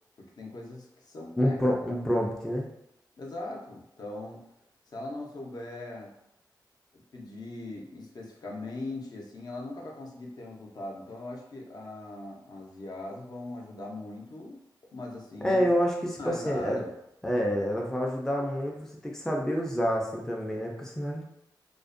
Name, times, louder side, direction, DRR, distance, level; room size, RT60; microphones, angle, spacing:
voice 1, 0.2-1.8 3.2-4.4 4.9-6.1 7.1-14.6 14.9-15.7 16.2-16.9, left 2 dB, 60° left, -1 dB, 0.5 m, -40 dB
voice 2, 1.4-2.7 15.4-16.8 17.2-21.2, equal, 5° left, -1 dB, 0.3 m, -28 dB
2.4 x 2.0 x 2.5 m, 0.81 s
wide cardioid pair, 105°, 8 cm